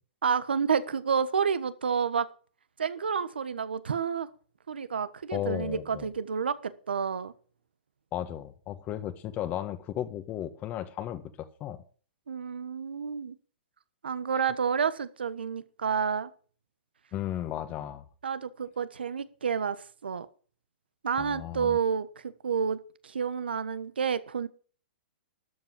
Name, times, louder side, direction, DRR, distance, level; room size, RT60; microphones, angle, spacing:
voice 1, 0.2-2.3 2.8-4.3 4.7-7.3 12.3-13.4 14.0-16.3 18.2-19.8 20.0-20.3 21.0-24.5, right 6 dB, 90° right, 1.2 m, -29 dB
voice 2, 5.3-6.1 8.1-11.8 17.1-18.0 21.2-21.8, left 12 dB, 30° left, 1.5 m, -35 dB
12.5 x 7.3 x 7.3 m
hypercardioid pair, 135°, 5 cm